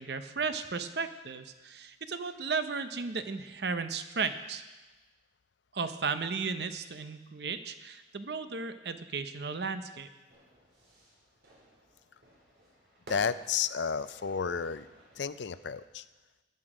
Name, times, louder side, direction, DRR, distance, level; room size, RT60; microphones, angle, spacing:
voice 1, 0.0-4.6 5.7-10.1, right 5 dB, 65° right, 10 dB, 0.8 m, -35 dB
Fire / Fireworks, 10.3-15.9, right 1 dB, 80° right, 4.4 m, -56 dB
voice 2, 13.1-14.9 15.2-16.1, left 6 dB, 80° left, 14 dB, 0.5 m, -32 dB
15.0 x 10.5 x 5.0 m, 1.2 s
head